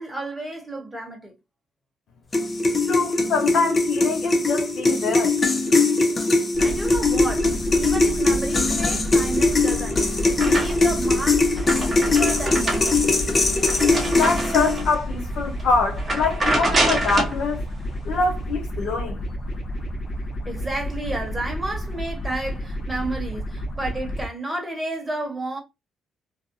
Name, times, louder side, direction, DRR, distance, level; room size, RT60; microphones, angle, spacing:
voice 1, 0.0-1.3 6.6-11.5 11.7-13.1 20.4-25.6, right 2 dB, 10° right, 1.2 m, -32 dB
sound 1, 2.3-14.9, left 3 dB, 30° left, 0.6 m, -21 dB
voice 2, 2.9-5.3 14.1-17.7 18.0-19.2, left 4 dB, 75° left, 0.5 m, -24 dB
sound 2, 6.5-24.3, equal, 45° left, 0.9 m, -31 dB
sound 3, 9.5-11.0 11.4-15.0 15.5-15.6 16.0-17.4, right 2 dB, 35° right, 0.9 m, -27 dB
2.6 x 2.3 x 2.6 m
cardioid pair, 90°, 0 cm